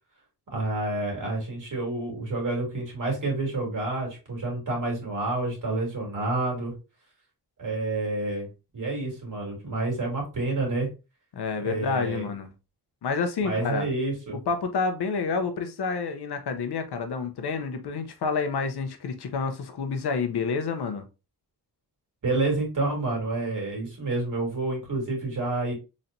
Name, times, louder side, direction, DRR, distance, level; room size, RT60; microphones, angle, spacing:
voice 1, 0.5-6.7 7.6-8.5 8.7-10.9 11.6-12.3 13.4-14.4 22.2-25.7, right 2 dB, 50° right, 2.5 m, -29 dB
voice 2, 11.3-12.5 13.0-13.9 14.5-21.0, left 5 dB, 70° left, 0.8 m, -29 dB
4.1 x 3.2 x 2.6 m
cardioid pair, 65°, 40 cm